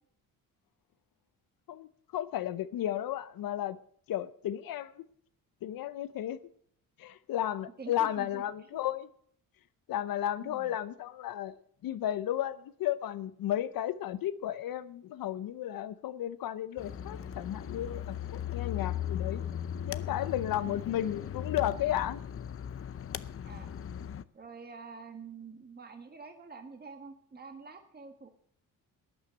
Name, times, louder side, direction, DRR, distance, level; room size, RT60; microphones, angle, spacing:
voice 1, 1.7-3.8 4.1-5.0 5.6-6.4 7.0-9.1 9.9-19.4 19.9-22.2, left 12 dB, 70° left, 0.8 m, -34 dB
voice 2, 7.8-8.4 10.4-10.8 20.6-20.9 23.4-23.7 24.3-28.3, right 4 dB, 25° right, 1.6 m, -47 dB
sound 1, 16.8-24.2, left 10 dB, 40° left, 0.7 m, -38 dB
13.0 x 9.0 x 7.6 m
cardioid pair, 90°, 35 cm